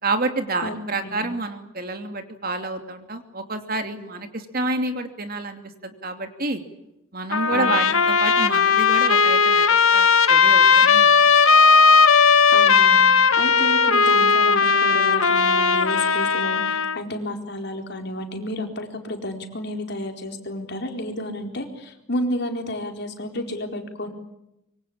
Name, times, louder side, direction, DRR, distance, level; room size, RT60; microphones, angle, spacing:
voice 1, 0.0-6.6 7.1-9.7 9.9-11.1, right 2 dB, 45° right, 6 dB, 2.8 m, -28 dB
Trumpet, 7.3-17.0, left 5 dB, 75° left, 1.7 m, -17 dB
voice 2, 7.5-7.8 12.5-13.1 13.4-24.1, left 1 dB, 50° left, 4 dB, 4.3 m, -31 dB
26.0 x 24.5 x 8.7 m, 0.86 s
head